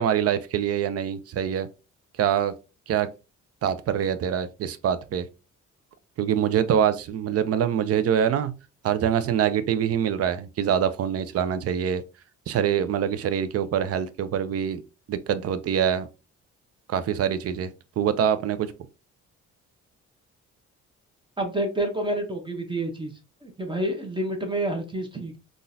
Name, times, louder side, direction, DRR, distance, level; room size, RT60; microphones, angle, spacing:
voice 1, 0.0-1.7 2.2-2.5 2.9-3.1 3.6-5.3 6.2-8.6 8.8-12.0 12.5-14.8 15.1-16.1 16.9-18.7, right 9 dB, 50° right, 0.5 m, -24 dB
voice 2, 21.4-23.1 23.4-25.4, right 1 dB, 15° right, 0.8 m, -28 dB
3.7 x 2.4 x 2.6 m
cardioid pair, 90°, 30 cm